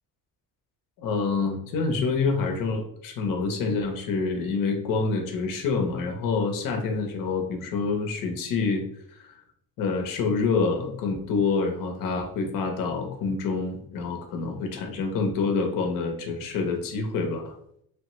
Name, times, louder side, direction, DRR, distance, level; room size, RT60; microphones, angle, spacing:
voice 1, 1.0-8.8 9.1-9.3 9.8-17.6, left 4 dB, 65° left, 3 dB, 0.7 m, -27 dB
3.0 x 2.2 x 3.0 m, 0.69 s
cardioid pair, 180°, 36 cm